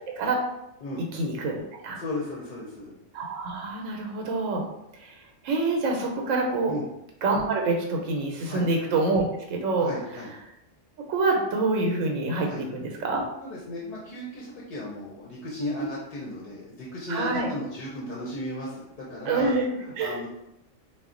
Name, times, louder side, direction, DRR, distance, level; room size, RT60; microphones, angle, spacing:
voice 1, 0.1-0.4 1.1-2.0 3.1-4.6 5.0-5.1 5.4-6.7 7.2-9.9 11.1-13.2 17.1-17.5 19.2-19.7 20.0-20.2, right 3 dB, 85° right, 1 dB, 1.0 m, -26 dB
voice 2, 2.0-3.0 6.7-6.9 8.4-8.7 9.8-10.3 12.4-12.7 13.4-19.5 19.8-20.3, left 1 dB, 55° left, -5 dB, 0.6 m, -35 dB
2.3 x 2.0 x 3.7 m, 0.85 s
omnidirectional pair, 1.3 m